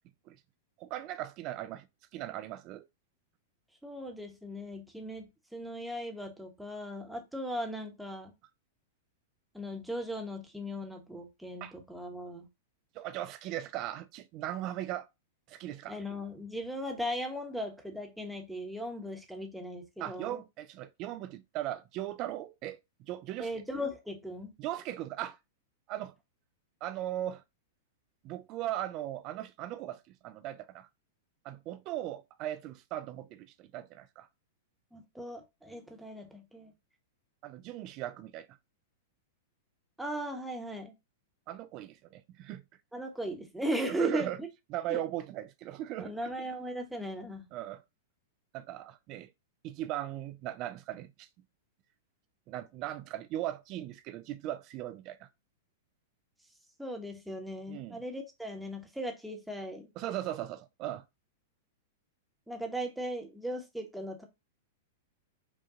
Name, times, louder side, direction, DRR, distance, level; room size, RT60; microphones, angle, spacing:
voice 1, 0.8-1.9 2.1-2.9 11.6-11.7 12.9-15.1 15.5-16.0 20.0-22.8 23.1-23.5 24.6-25.4 25.9-26.1 26.8-27.4 28.2-30.9 31.4-34.3 37.4-38.5 41.5-42.6 43.9-44.4 44.7-46.3 47.5-47.8 48.5-49.3 49.6-51.3 52.5-55.3 57.7-58.0 60.0-61.0, right 13 dB, 40° right, 0.3 m, -38 dB
voice 2, 3.8-8.3 9.5-12.5 15.9-20.4 23.4-24.5 34.9-36.7 40.0-40.9 42.9-44.5 44.9-45.0 46.0-47.5 56.8-59.9 62.5-64.2, equal, ahead, 0.9 m, -38 dB
5.1 x 2.3 x 2.7 m
figure-of-eight pair, 100°, 0 cm